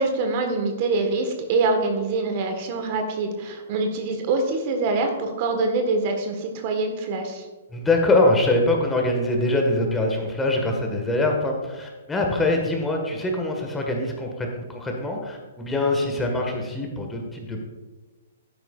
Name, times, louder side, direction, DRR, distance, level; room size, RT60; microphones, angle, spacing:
voice 1, 0.0-7.5, right 3 dB, 40° right, 4 dB, 1.4 m, -24 dB
voice 2, 7.7-17.6, left 2 dB, 10° left, 1 dB, 1.6 m, -23 dB
12.0 x 9.4 x 2.4 m, 1.2 s
figure-of-eight pair, 125°, 0 cm